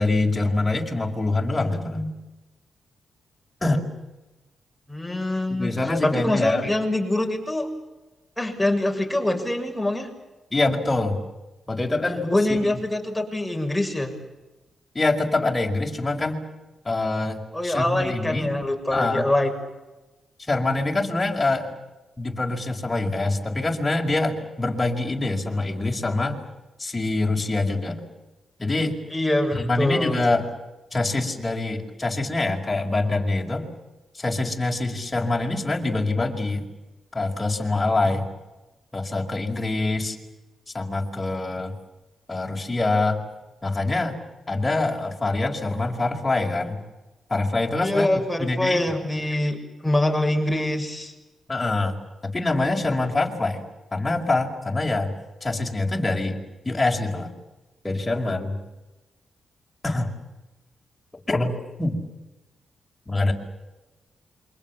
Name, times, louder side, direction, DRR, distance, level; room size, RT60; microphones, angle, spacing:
voice 1, 0.0-2.1 3.6-3.9 5.5-6.7 10.5-11.2 11.7-12.3 14.9-16.4 16.8-18.5 18.9-19.3 20.5-21.7 22.2-26.4 26.8-28.0 28.6-29.0 29.5-30.5 30.9-33.7 34.1-36.6 37.1-38.3 38.9-40.2 40.7-41.8 42.3-43.2 43.6-44.2 44.5-46.8 47.3-48.1 48.4-48.8 51.5-51.9 52.2-53.6 53.9-55.1 55.4-56.4 56.6-57.3 57.8-58.6 59.8-60.1 61.3-62.0 63.1-63.3, left 2 dB, 20° left, 1 dB, 5.1 m, -25 dB
voice 2, 4.9-5.7 6.0-7.7 8.4-10.1 12.2-14.2 17.5-19.5 29.1-30.2 47.8-51.1, left 1 dB, 5° left, 2 dB, 6.9 m, -24 dB
28.0 x 24.0 x 7.3 m, 1.1 s
cardioid pair, 65°, 0 cm